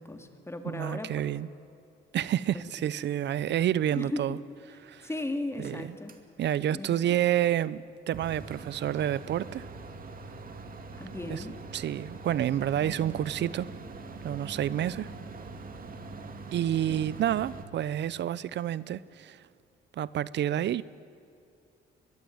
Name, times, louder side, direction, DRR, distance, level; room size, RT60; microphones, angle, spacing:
voice 1, 0.0-1.3 3.0-3.1 3.9-4.4 5.0-6.1 6.7-7.2 11.0-11.5, left 2 dB, 15° left, 6 dB, 2.5 m, -36 dB
voice 2, 0.7-1.5 2.1-4.4 4.8-5.1 5.6-5.9 6.4-9.7 11.3-11.4 11.7-13.7 14.2-15.1 16.5-19.4 19.9-20.8, right 11 dB, 65° right, 19 dB, 0.6 m, -29 dB
sound 1, 5.6-5.8 6.1-6.2 8.1-17.6, right 3 dB, 45° right, 2.4 m, -43 dB
23.5 x 21.0 x 8.8 m, 2.5 s
cardioid pair, 90°, 20 cm